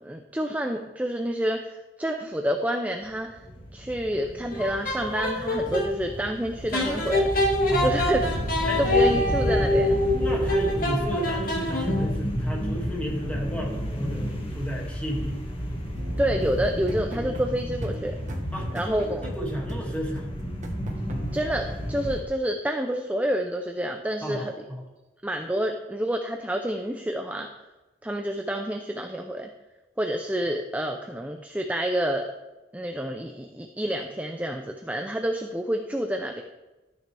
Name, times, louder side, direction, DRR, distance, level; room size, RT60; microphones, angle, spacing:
voice 1, 0.0-3.4 3.7-7.3 7.8-8.5 8.8-10.0 16.2-18.1 18.7-19.2 21.3-24.5 25.2-27.5 28.0-29.5 30.0-32.3 32.7-36.4, equal, 10° right, 3 dB, 0.6 m, -28 dB
sound 1, 3.1-22.2, equal, 30° left, 1.9 m, -32 dB
sound 2, 4.5-5.9 6.7-12.2, left 1 dB, 50° left, 2.3 m, -25 dB
voice 2, 7.7-8.0 8.7-8.8 10.1-15.4 18.5-20.3 24.2-24.8, equal, 10° left, -2 dB, 2.3 m, -33 dB
sound 3, 15.9-21.5, equal, 45° right, 1.4 m, -39 dB
13.5 x 9.3 x 3.5 m, 1.1 s
head